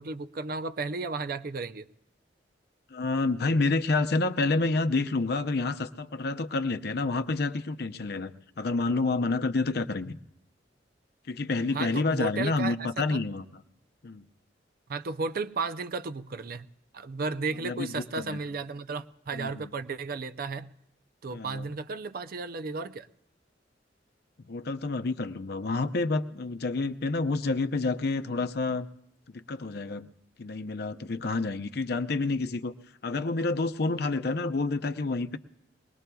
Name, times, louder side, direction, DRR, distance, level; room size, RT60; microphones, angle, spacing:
voice 1, 0.0-1.9 11.7-13.2 14.9-16.7 16.9-20.7 21.2-23.1, right 4 dB, 55° right, 0.5 m, -34 dB
voice 2, 2.9-10.2 11.3-13.5 14.0-14.2 17.6-18.4 19.3-19.7 21.3-21.7 24.5-28.9 29.3-30.1 30.4-32.7 33.0-35.4, left 3 dB, 60° left, 0.6 m, -29 dB
23.0 x 19.5 x 2.3 m
head